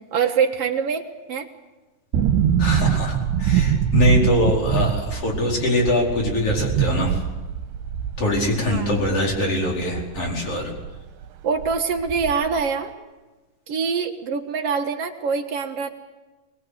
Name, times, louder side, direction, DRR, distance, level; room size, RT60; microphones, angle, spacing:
voice 1, 0.1-1.5 8.7-9.0 11.4-12.9 13.7-15.9, right 6 dB, 60° right, 3 dB, 1.6 m, -24 dB
sound 1, 2.1-11.0 11.2-11.3 11.6-12.6 12.9-13.0, right 9 dB, 85° right, 3.5 m, -24 dB
voice 2, 2.6-7.2 8.2-10.7, left 1 dB, 35° left, -1 dB, 5.4 m, -23 dB
24.5 x 20.0 x 8.1 m, 1.2 s
omnidirectional pair, 5.0 m